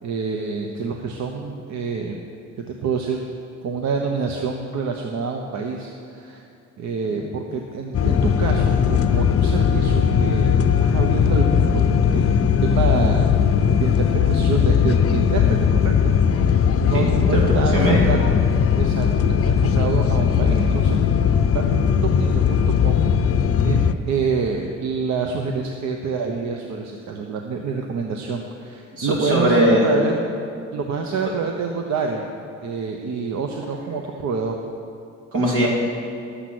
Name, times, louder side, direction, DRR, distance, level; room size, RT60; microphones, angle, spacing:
voice 1, 0.0-2.2 2.8-3.3 3.6-6.4 6.8-11.9 12.1-13.3 13.8-13.9 14.3-17.8 18.1-18.2 18.8-21.0 21.5-23.0 23.6-30.2 30.7-32.2 32.6-34.6, right 5 dB, 65° right, 2 dB, 0.9 m, -27 dB
sound 1, 7.9-23.9, left 7 dB, 50° left, 0.6 m, -18 dB
voice 2, 16.9-18.0 28.9-29.9 35.3-35.7, equal, 85° right, -4 dB, 3.1 m, -20 dB
11.5 x 8.0 x 6.1 m, 2.5 s
cardioid pair, 90°, 30 cm